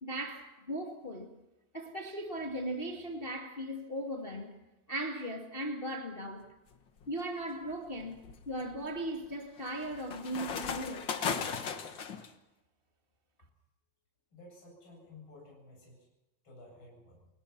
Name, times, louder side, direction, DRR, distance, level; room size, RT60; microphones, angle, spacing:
voice 1, 0.0-1.3 1.7-4.5 4.9-6.5 7.1-8.2 8.4-11.1, right 1 dB, 45° left, 0.7 m, -38 dB
sound 1, 6.7-7.1 7.7-12.3, left 6 dB, 85° left, 1.0 m, -37 dB
voice 2, 14.3-16.1 16.4-17.3, left 2 dB, 30° left, 8.7 m, -54 dB
30.0 x 18.0 x 5.9 m
omnidirectional pair, 4.5 m